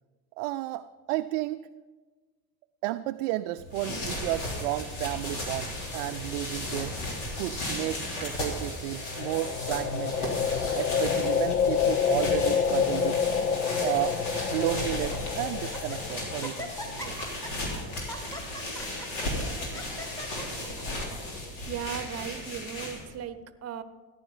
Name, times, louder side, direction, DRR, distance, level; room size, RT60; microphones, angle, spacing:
voice 1, 0.4-1.7 2.8-6.9 7.4-10.3 10.7-13.2 13.8-14.2 14.5-16.7 17.0-17.2, right 16 dB, 55° right, 10 dB, 0.5 m, -32 dB
sound 1, 3.6-23.2, left 1 dB, 65° left, 3.3 m, -35 dB
sound 2, 9.0-17.1, left 7 dB, 90° left, 0.6 m, -28 dB
Laughter, 10.2-11.0 11.7-12.1 12.3-12.4 13.2-13.8 14.3-14.4 14.8-15.2 15.6-16.0 16.4-21.2, equal, 5° left, 1.8 m, -43 dB
voice 2, 21.7-23.8, right 8 dB, 30° right, 14 dB, 0.8 m, -37 dB
14.0 x 10.0 x 5.4 m, 1.4 s
figure-of-eight pair, 60°, 47 cm